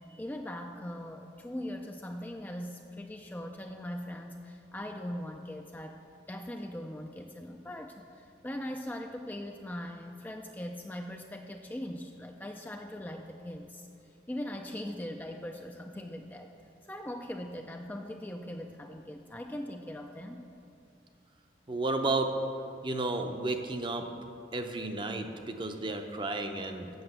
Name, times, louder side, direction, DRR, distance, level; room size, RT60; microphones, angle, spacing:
voice 1, 0.2-6.0 6.3-13.9 14.3-16.5 16.9-20.4, left 1 dB, 10° left, 3 dB, 0.3 m, -40 dB
voice 2, 21.7-22.3 22.8-24.1 24.5-26.9, right 2 dB, 25° right, 6 dB, 0.6 m, -32 dB
7.9 x 6.4 x 7.9 m, 2.6 s
head